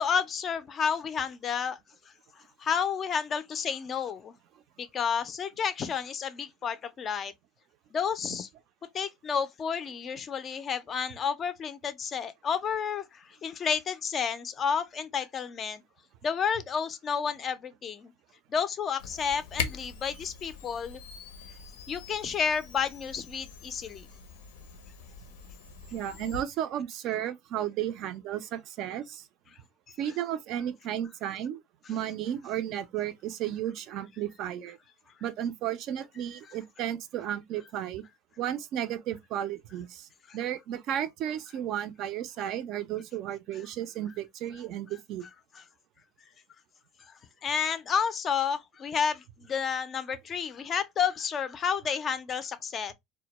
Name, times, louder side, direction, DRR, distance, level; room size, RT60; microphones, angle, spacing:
voice 1, 0.0-1.8 2.6-4.3 4.8-7.3 7.9-8.5 8.9-15.8 16.2-18.1 18.5-21.0 21.9-24.1 40.3-40.4 45.6-45.7 47.4-52.9, left 7 dB, 35° left, 0.3 m, -31 dB
Camera, 19.0-26.4, left 6 dB, 90° left, 0.5 m, -42 dB
voice 2, 25.9-29.2 30.0-31.6 31.9-34.8 35.2-38.0 38.4-40.1 40.3-45.2, right 11 dB, 55° right, 0.3 m, -33 dB
2.1 x 2.0 x 2.8 m
supercardioid pair, 115°, 0 cm